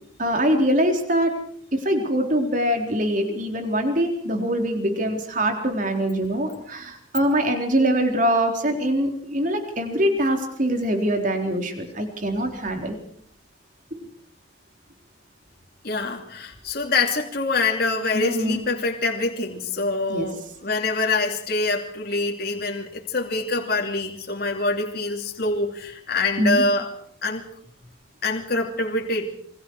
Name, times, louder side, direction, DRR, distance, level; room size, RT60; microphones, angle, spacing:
voice 1, 0.2-1.3 1.7-13.0 13.9-14.0 18.1-18.6 20.1-20.3 26.4-26.6, equal, 40° right, 4 dB, 4.0 m, -23 dB
voice 2, 15.8-26.9 27.2-27.5 28.2-29.3, left 3 dB, 50° left, 1 dB, 2.8 m, -25 dB
28.5 x 23.5 x 4.8 m, 0.64 s
head